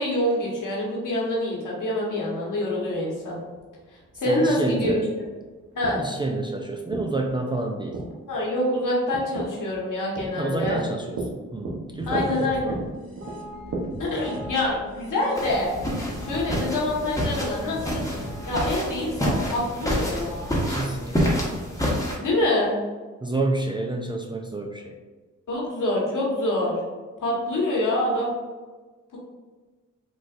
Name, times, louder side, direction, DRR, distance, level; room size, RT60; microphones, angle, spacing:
voice 1, 0.0-3.4 4.2-5.0 5.7-6.0 8.3-10.8 12.1-12.6 14.0-15.7 16.2-18.0 18.4-20.5 22.2-22.8 25.5-26.8 27.2-28.3, left 1 dB, 65° left, -4 dB, 1.3 m, -26 dB
sound 1, 2.8-13.8, right 2 dB, 65° right, 0.9 m, -36 dB
voice 2, 4.3-5.1 6.0-8.0 10.3-12.8 20.7-21.4 23.2-25.0, right 2 dB, 15° right, 1 dB, 0.4 m, -29 dB
sound 2, 11.9-19.6, equal, 40° right, 1.3 m, -40 dB
sound 3, 15.4-22.2, equal, 10° left, 1.0 m, -28 dB
3.9 x 2.4 x 2.5 m, 1.3 s
supercardioid pair, 45°, 33 cm